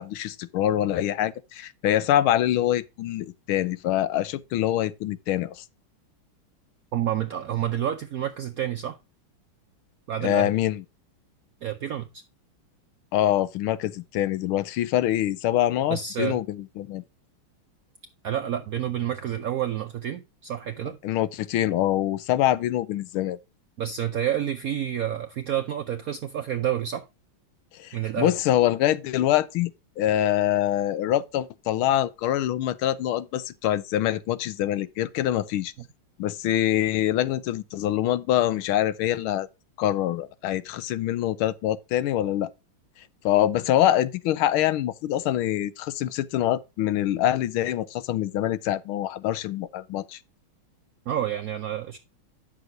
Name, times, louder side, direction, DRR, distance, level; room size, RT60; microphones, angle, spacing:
voice 1, 0.0-5.6 10.2-10.8 13.1-17.0 21.0-23.4 27.7-35.7 36.2-39.5 39.8-42.5 43.2-50.2, left 12 dB, 80° left, 1.5 m, -25 dB
voice 2, 6.9-9.0 10.1-10.5 11.6-12.2 15.9-16.4 18.2-21.0 23.8-27.1 27.9-28.3 35.8-35.9 51.1-52.0, right 10 dB, 75° right, 0.8 m, -29 dB
9.5 x 6.7 x 3.8 m
omnidirectional pair, 2.3 m